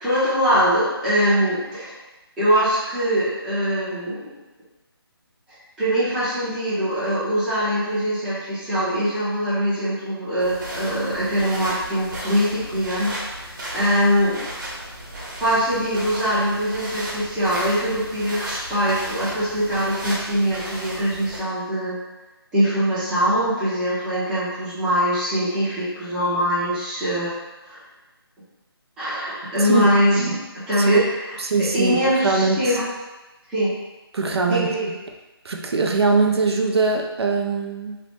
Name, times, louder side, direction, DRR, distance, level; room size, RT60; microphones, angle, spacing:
voice 1, 0.0-1.9 2.4-4.2 5.8-13.2 13.7-14.4 15.4-22.0 22.5-27.3 27.6-27.8 29.0-31.0 31.6-32.8 33.5-33.7 34.5-34.9, equal, 5° right, -13 dB, 0.5 m, -22 dB
sound 1, 10.4-21.4, right 1 dB, 50° right, 1.0 m, -35 dB
voice 2, 29.6-29.9 30.8-31.0 31.4-32.8 34.1-34.7 35.4-38.0, right 4 dB, 80° right, 3 dB, 0.5 m, -21 dB
3.1 x 2.0 x 3.0 m, 1.1 s
figure-of-eight pair, 165°, 13 cm